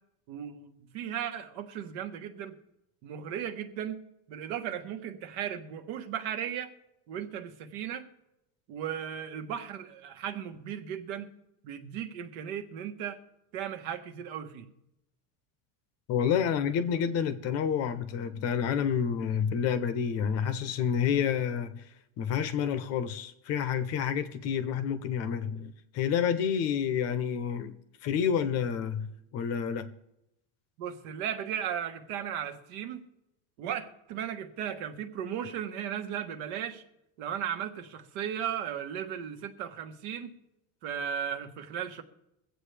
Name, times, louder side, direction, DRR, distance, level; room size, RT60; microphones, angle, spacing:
voice 1, 0.3-0.7 0.9-2.6 3.0-4.0 4.3-6.7 7.1-8.0 8.7-11.4 11.6-13.2 13.5-14.7 30.8-33.0 33.6-36.8 37.2-40.3 40.8-42.0, right 9 dB, 65° right, 1.3 m, -36 dB
voice 2, 16.1-21.8 22.2-27.7 28.0-29.9, left 8 dB, 40° left, 0.8 m, -29 dB
23.5 x 7.9 x 3.4 m
cardioid pair, 165°, 37 cm